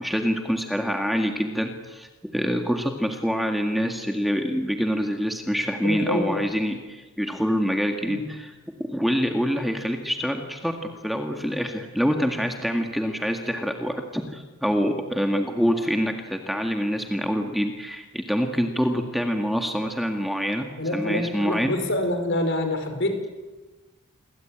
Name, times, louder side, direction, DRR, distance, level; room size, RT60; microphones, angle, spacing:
voice 1, 0.0-8.5 8.8-21.7, equal, ahead, 3 dB, 1.9 m, -26 dB
voice 2, 5.8-6.4 8.1-8.2 20.8-23.3, left 1 dB, 55° left, 7 dB, 5.0 m, -26 dB
28.5 x 22.5 x 8.9 m, 1.2 s
head